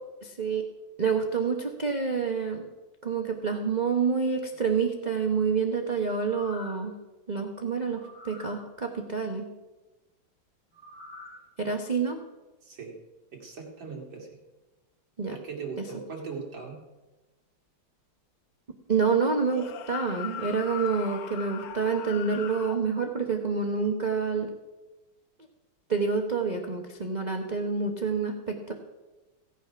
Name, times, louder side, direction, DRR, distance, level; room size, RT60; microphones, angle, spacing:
voice 1, 0.2-0.7 1.0-2.6 3.0-6.9 7.3-9.5 11.6-12.2 15.2-15.3 18.9-24.5 25.9-28.7, right 5 dB, 35° right, 2 dB, 0.7 m, -28 dB
sound 1, 6.3-6.9 7.9-8.6 10.7-11.4 11.9-12.0, left 2 dB, 55° left, 3.2 m, -46 dB
voice 2, 12.6-12.9 13.3-14.3 15.3-16.8, right 5 dB, 65° right, 0 dB, 3.1 m, -39 dB
sound 2, 19.4-22.8, left 10 dB, 90° left, 1.8 m, -39 dB
16.5 x 9.2 x 5.8 m, 1.1 s
omnidirectional pair, 2.3 m